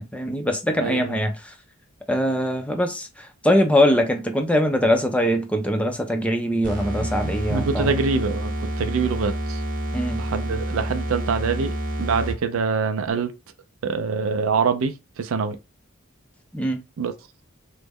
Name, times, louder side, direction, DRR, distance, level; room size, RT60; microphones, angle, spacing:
voice 1, 0.0-1.5 2.1-7.9 9.9-10.2 16.5-16.8, equal, 5° left, 0.5 m, -22 dB
voice 2, 0.8-1.2 7.2-8.5 8.8-9.6 10.2-11.7 12.0-13.3 13.8-15.6 17.0-17.1, right 5 dB, 75° right, 0.4 m, -25 dB
sound 1, 6.6-12.6, right 1 dB, 40° right, 0.7 m, -28 dB
3.1 x 2.1 x 3.5 m
head